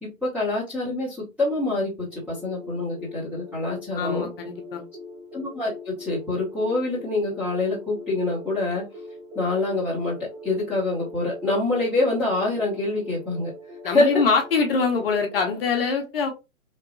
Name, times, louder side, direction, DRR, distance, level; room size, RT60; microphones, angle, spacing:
voice 1, 0.0-4.3 5.3-8.8 9.3-10.2 10.4-13.5 13.8-14.2, left 2 dB, 5° right, -9 dB, 0.7 m, -26 dB
sound 1, 2.1-15.7, left 2 dB, 40° right, 1.9 m, -42 dB
voice 2, 3.9-4.8 13.8-16.3, left 5 dB, 45° left, 2 dB, 0.7 m, -23 dB
3.0 x 2.5 x 2.5 m, 0.25 s
hypercardioid pair, 145°, 41 cm